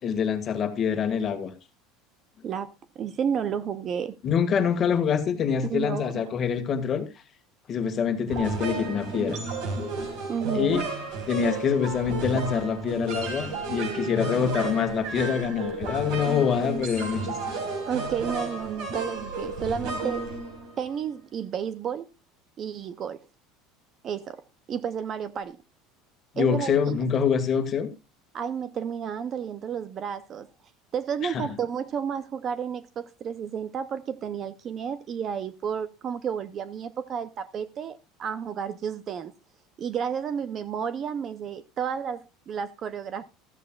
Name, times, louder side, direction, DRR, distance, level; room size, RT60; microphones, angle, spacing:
voice 1, 0.0-1.5 4.2-7.0 7.7-9.4 10.5-10.8 11.3-17.4 26.3-27.9 31.2-31.4, left 7 dB, 25° left, 1.7 m, -25 dB
voice 2, 2.4-4.2 5.7-6.2 10.3-10.8 17.9-20.3 20.8-22.1 22.6-23.2 24.0-24.4 24.7-25.6 26.4-27.0 28.3-30.5 30.9-39.3 39.8-43.2, right 7 dB, 25° right, 0.5 m, -31 dB
sound 1, 8.3-21.0, right 3 dB, 55° right, 5.0 m, -33 dB
15.0 x 14.0 x 2.3 m
cardioid pair, 175°, 0 cm